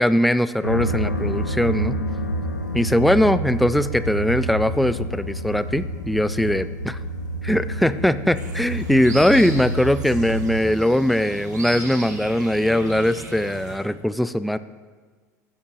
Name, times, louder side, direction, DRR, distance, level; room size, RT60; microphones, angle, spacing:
voice 1, 0.0-2.0 2.7-7.0 7.4-14.6, equal, ahead, 15 dB, 0.4 m, -20 dB
sound 1, 0.6-10.6, equal, 85° left, 0.6 m, -28 dB
sound 2, 8.3-13.8, right 2 dB, 80° right, 1.8 m, -37 dB
15.5 x 13.0 x 3.0 m, 1.5 s
figure-of-eight pair, 70°, 9 cm